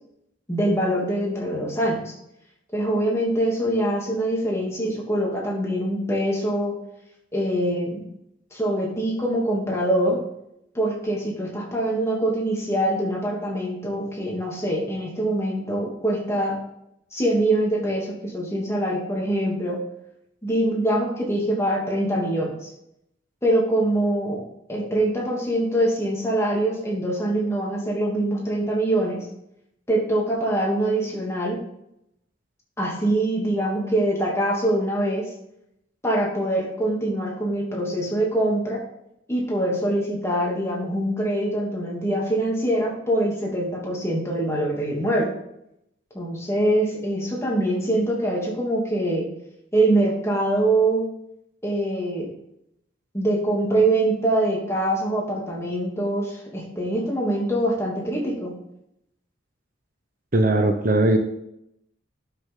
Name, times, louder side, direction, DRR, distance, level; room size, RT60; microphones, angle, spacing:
voice 1, 0.5-2.1 2.7-6.8 7.3-8.1 8.5-10.2 10.7-16.6 17.1-19.8 20.4-22.7 23.4-24.4 24.7-29.3 29.9-31.6 32.8-35.3 36.0-38.8 39.3-45.3 46.1-49.3 49.7-51.1 51.6-52.3 53.1-58.6, right 1 dB, 15° left, -3 dB, 2.7 m, -24 dB
voice 2, 60.3-61.2, right 1 dB, 40° right, 5 dB, 0.8 m, -19 dB
11.5 x 6.6 x 3.8 m, 0.78 s
head